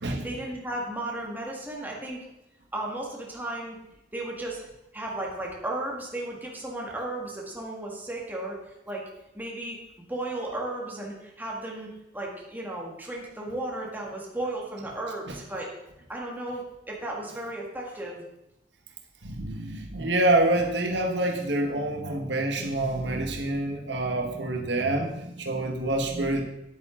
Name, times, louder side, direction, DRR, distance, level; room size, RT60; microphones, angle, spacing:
voice 1, 0.2-2.2 2.7-3.8 4.1-4.7 4.9-8.6 8.9-9.0 9.3-9.8 10.1-15.7 16.1-18.3, right 1 dB, 10° right, -2 dB, 1.8 m, -34 dB
voice 2, 19.2-26.4, right 1 dB, 90° right, 2 dB, 1.3 m, -27 dB
9.7 x 8.4 x 3.8 m, 0.90 s
head